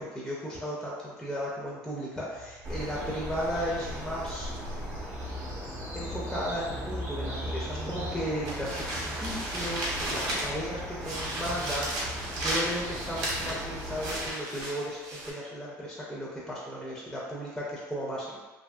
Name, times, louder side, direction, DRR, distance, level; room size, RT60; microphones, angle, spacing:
voice 1, 0.0-4.5 5.9-18.4, equal, 5° left, -5 dB, 0.5 m, -35 dB
sound 1, 2.3-7.6, equal, 70° left, 0.5 m, -45 dB
sound 2, 2.6-14.3, equal, 45° right, 0.8 m, -37 dB
sound 3, 8.4-10.7 11.0-15.3, right 1 dB, 80° right, 0.8 m, -34 dB
2.7 x 2.6 x 2.2 m, 1.2 s
cardioid pair, 140°, 7 cm